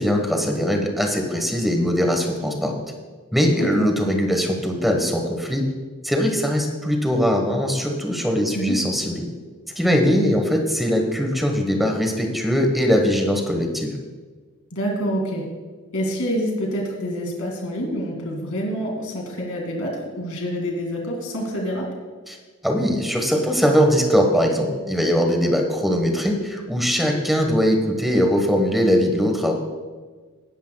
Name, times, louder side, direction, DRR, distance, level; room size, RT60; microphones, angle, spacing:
voice 1, 0.0-2.8 3.3-5.6 6.0-9.2 9.8-14.0 22.3-22.4 22.6-29.5, equal, ahead, 2 dB, 1.3 m, -21 dB
voice 2, 3.6-3.9 8.5-8.8 14.7-15.5 15.9-21.9, equal, 70° left, 0 dB, 2.5 m, -27 dB
18.0 x 10.0 x 2.3 m, 1.4 s
head